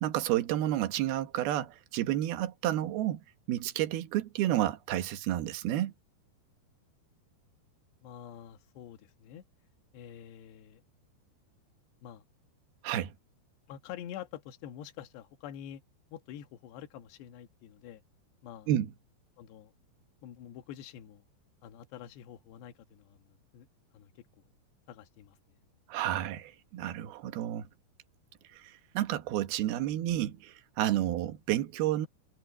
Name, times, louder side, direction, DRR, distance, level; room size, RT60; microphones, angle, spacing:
voice 1, 0.0-3.2 3.5-5.9 12.8-13.1 18.7-18.9 25.9-27.7 28.5-32.1, right 13 dB, 70° right, 3.2 m, -30 dB
voice 2, 8.0-9.4 9.9-10.8 12.0-12.2 13.7-15.8 16.1-18.0 18.4-18.7 19.4-19.7 20.2-21.2 21.6-23.7 23.9-24.1 24.9-25.4, left 10 dB, 85° left, 3.5 m, -47 dB
omnidirectional pair, 4.8 m